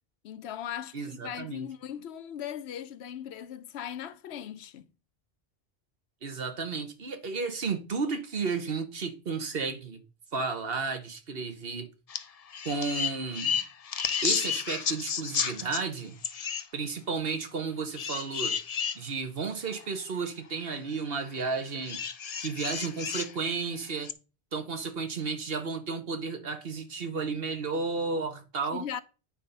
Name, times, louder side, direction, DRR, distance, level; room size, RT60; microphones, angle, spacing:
voice 1, 0.2-4.9 28.7-29.0, left 9 dB, 90° left, 0.9 m, -38 dB
voice 2, 0.9-1.7 6.2-10.0 10.3-11.9 12.6-13.6 14.2-16.2 16.7-18.6 18.9-22.0 22.4-24.1 24.5-28.8, right 4 dB, 65° right, 1.4 m, -33 dB
sound 1, 12.1-12.2 12.5-15.8 16.2-16.7 18.0-19.0 19.7-19.8 21.8-23.3 24.0-24.1, left 7 dB, 45° left, 0.5 m, -31 dB
9.1 x 4.4 x 5.3 m
omnidirectional pair, 1.1 m